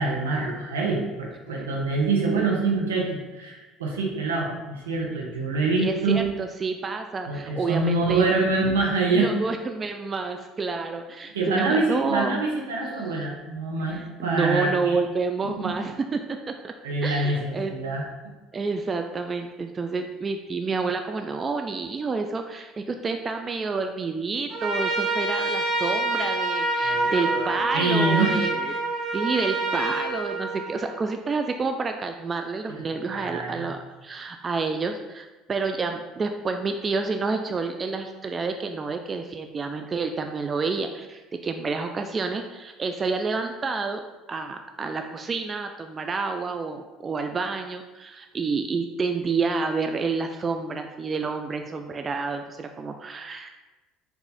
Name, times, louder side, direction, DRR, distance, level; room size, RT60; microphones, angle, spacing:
voice 1, 0.0-6.3 7.2-9.3 11.3-15.0 15.4-15.7 16.8-18.0 26.8-28.8 32.7-33.7, right 3 dB, 85° right, -2 dB, 0.9 m, -26 dB
voice 2, 5.8-8.3 9.1-12.4 13.9-16.2 16.6-16.7 17.0-17.7 18.5-28.7 29.1-44.0 44.3-53.5, right 4 dB, 30° right, 5 dB, 0.3 m, -29 dB
Trumpet, 24.5-31.0, right 2 dB, 55° right, 0.8 m, -27 dB
4.7 x 2.6 x 4.0 m, 1.1 s
hypercardioid pair, 65°, 0 cm